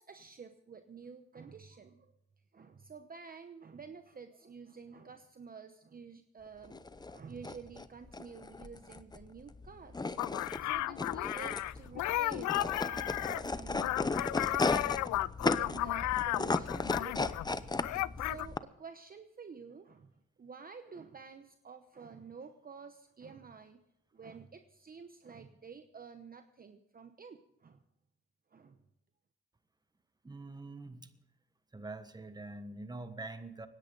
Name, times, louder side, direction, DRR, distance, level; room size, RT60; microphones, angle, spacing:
voice 1, 0.0-2.1 2.5-15.1 15.4-17.8 18.2-20.1 20.4-23.8 24.1-27.8 28.5-28.8, right 5 dB, 30° right, 8 dB, 0.9 m, -50 dB
sound 1, 6.6-18.6, left 3 dB, 15° left, 0.6 m, -36 dB
sound 2, 10.2-17.5 17.8-18.5, left 16 dB, 70° left, 0.4 m, -34 dB
voice 2, 30.2-31.1 31.7-33.7, right 2 dB, 15° right, 10 dB, 1.3 m, -44 dB
25.5 x 10.0 x 3.9 m, 0.84 s
cardioid pair, 90°, 30 cm